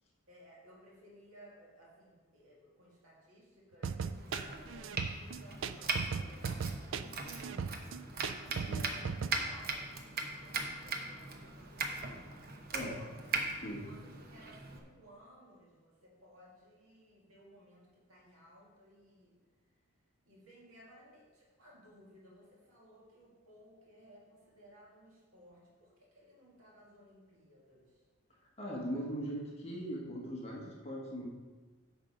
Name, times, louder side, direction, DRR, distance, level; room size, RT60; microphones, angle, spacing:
voice 1, 0.3-7.9 8.4-9.2 9.5-13.1 13.7-19.4 20.2-28.0, equal, 85° right, -4 dB, 2.0 m, -59 dB
sound 1, 3.8-9.3, right 6 dB, 65° right, 0.4 m, -37 dB
Domestic sounds home sounds, 4.1-14.8, right 3 dB, 45° right, 0.8 m, -40 dB
voice 2, 8.5-8.9 12.7-13.0 13.6-13.8 28.6-31.3, equal, 30° left, -3 dB, 1.4 m, -40 dB
8.9 x 5.5 x 5.1 m, 1.3 s
head